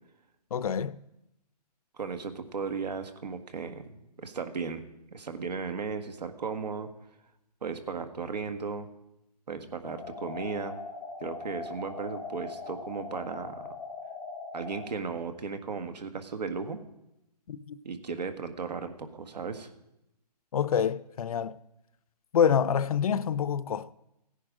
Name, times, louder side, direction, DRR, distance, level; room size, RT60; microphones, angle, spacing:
voice 1, 0.5-1.0 17.5-17.8 20.5-21.6 22.3-23.9, left 7 dB, 60° left, 0.6 m, -27 dB
voice 2, 1.9-4.8 5.1-6.9 7.6-8.9 9.5-10.8 11.2-13.6 14.5-16.8 17.8-19.7, right 5 dB, 80° right, 1.7 m, -36 dB
sound 1, 9.8-14.9, left 3 dB, 15° left, 0.6 m, -41 dB
16.0 x 10.0 x 5.1 m
hypercardioid pair, 160°, 21 cm